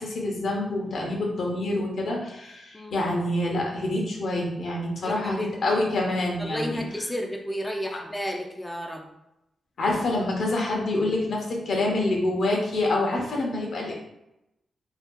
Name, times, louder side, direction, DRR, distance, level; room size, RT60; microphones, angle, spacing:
voice 1, 0.0-6.8 9.8-13.9, left 2 dB, 75° left, -1 dB, 0.9 m, -26 dB
voice 2, 5.0-5.6 6.4-9.1, equal, 10° left, 1 dB, 0.5 m, -32 dB
2.9 x 2.3 x 3.6 m, 0.87 s
cardioid pair, 65°, 0 cm